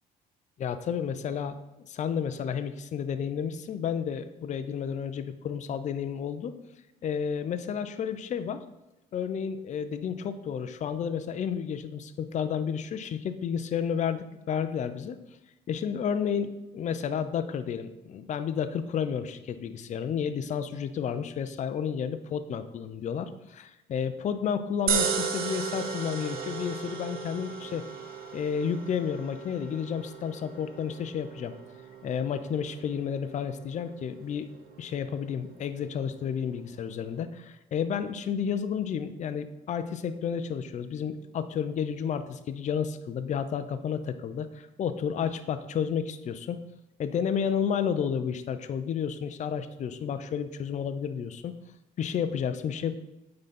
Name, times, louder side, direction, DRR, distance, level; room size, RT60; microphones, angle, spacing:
voice 1, 0.6-1.5 1.9-6.5 7.0-8.6 9.1-15.2 15.7-27.9 28.3-31.5 32.0-34.5 34.8-46.6 47.0-51.6 52.0-52.9, left 7 dB, 45° left, 10 dB, 0.6 m, -31 dB
sound 1, 24.9-37.2, right 6 dB, 60° right, 1.0 m, -36 dB
8.9 x 4.0 x 5.9 m, 0.98 s
cardioid pair, 110°, 17 cm